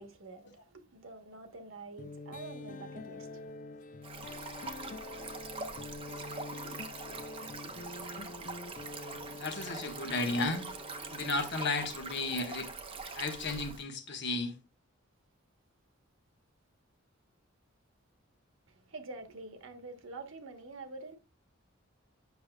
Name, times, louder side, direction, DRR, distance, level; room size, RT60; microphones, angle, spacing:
voice 1, 0.0-3.5 18.7-21.2, right 3 dB, 65° right, 1.2 m, -47 dB
sound 1, 2.0-12.6, left 3 dB, 40° left, 0.4 m, -46 dB
Stream, 4.0-13.8, right 3 dB, 25° right, 0.8 m, -43 dB
voice 2, 9.0-10.6 11.1-12.7 13.1-14.5, left 3 dB, 60° left, 1.2 m, -34 dB
8.2 x 6.2 x 2.3 m
head